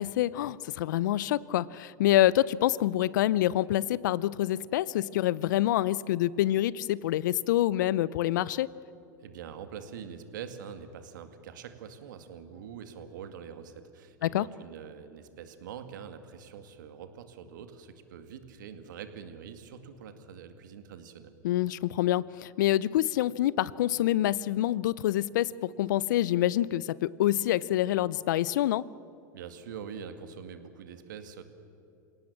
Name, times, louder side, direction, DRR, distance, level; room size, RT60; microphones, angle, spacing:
voice 1, 0.0-8.7 14.2-14.5 21.4-28.8, left 13 dB, 70° left, 21 dB, 0.6 m, -26 dB
voice 2, 9.2-21.3 29.3-31.4, right 7 dB, 75° right, 8 dB, 2.1 m, -44 dB
27.5 x 18.0 x 7.3 m, 2.7 s
hypercardioid pair, 90°, 10 cm